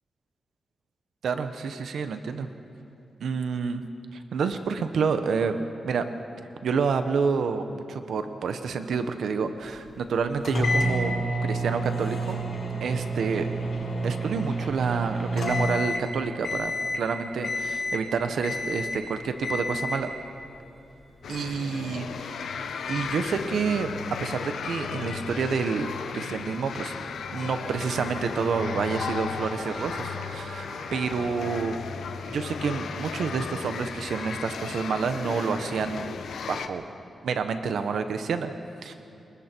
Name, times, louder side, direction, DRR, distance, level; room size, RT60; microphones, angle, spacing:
voice 1, 1.2-2.5 3.2-3.8 4.1-5.6 5.8-6.0 6.6-11.1 11.4-12.4 12.8-13.5 14.0-20.1 21.3-23.9 24.2-26.9 27.3-31.8 32.3-36.1 36.5-36.8 37.2-38.5 38.8-38.9, right 5 dB, 85° right, 8 dB, 1.1 m, -28 dB
sound 1, 10.4-16.1 16.4-17.0 17.4-18.1 18.4-19.0 19.4-20.1, equal, 65° left, 5.6 m, -29 dB
sound 2, 21.2-36.7, left 6 dB, 90° left, 1.0 m, -35 dB
Trumpet, 27.4-32.0, right 1 dB, 40° right, 5.1 m, -43 dB
29.5 x 20.5 x 4.6 m, 2.7 s
wide cardioid pair, 140°, 0 cm